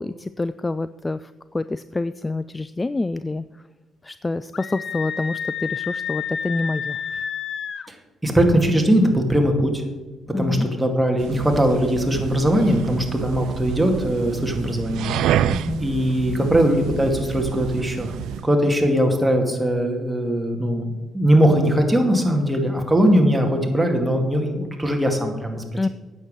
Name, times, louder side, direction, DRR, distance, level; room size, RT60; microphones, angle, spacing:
voice 1, 0.0-3.4 4.0-7.0 10.3-10.7 15.5-15.8 25.8-25.9, left 2 dB, 20° left, 14 dB, 0.3 m, -27 dB
Screaming, 4.5-7.9, left 7 dB, 55° left, 0.6 m, -30 dB
voice 2, 8.2-9.8 10.3-15.5 15.8-18.1 18.4-25.6, equal, 5° right, 2 dB, 2.1 m, -20 dB
sound 1, 11.2-18.5, right 11 dB, 85° right, 0.3 m, -28 dB
9.1 x 7.3 x 6.5 m, 1.2 s
cardioid pair, 90°, 0 cm